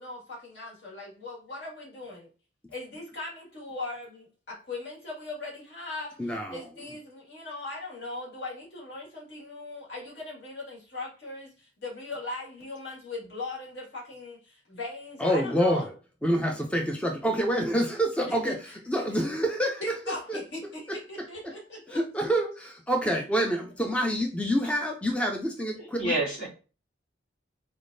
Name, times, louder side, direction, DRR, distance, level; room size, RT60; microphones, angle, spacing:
voice 1, 0.0-2.3 2.7-15.9 18.2-19.2 19.8-22.0, left 2 dB, 65° left, 1.9 m, -39 dB
voice 2, 6.2-6.6 15.2-15.9 16.2-18.6 18.9-20.4 20.9-21.5 21.9-26.2, equal, 5° left, 0.4 m, -27 dB
voice 3, 25.8-26.5, right 2 dB, 80° left, 2.2 m, -29 dB
4.0 x 3.4 x 2.6 m
head